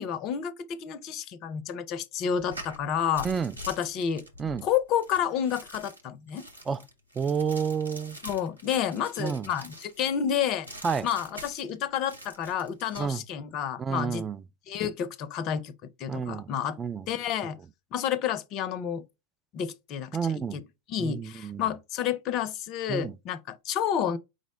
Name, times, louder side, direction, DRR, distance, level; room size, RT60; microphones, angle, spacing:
voice 1, 0.0-3.3 3.7-4.2 4.6-6.5 8.2-10.7 11.0-14.2 14.7-15.7 16.0-16.8 17.1-17.6 17.9-19.0 19.5-20.6 20.9-24.2, left 9 dB, 40° left, 0.5 m, -30 dB
sound 1, 2.3-10.1 10.6-11.8 12.0-13.1, equal, 85° right, 0.9 m, -45 dB
voice 2, 3.2-3.6 4.4-4.7 6.7-6.8 7.2-8.2 9.2-9.5 10.8-11.1 13.0-13.2 13.8-14.4 16.1-16.5 16.8-17.1 20.1-20.6 21.0-21.6 22.9-23.2, right 6 dB, 20° right, 0.3 m, -30 dB
5.0 x 2.0 x 3.8 m
figure-of-eight pair, 90°, 0 cm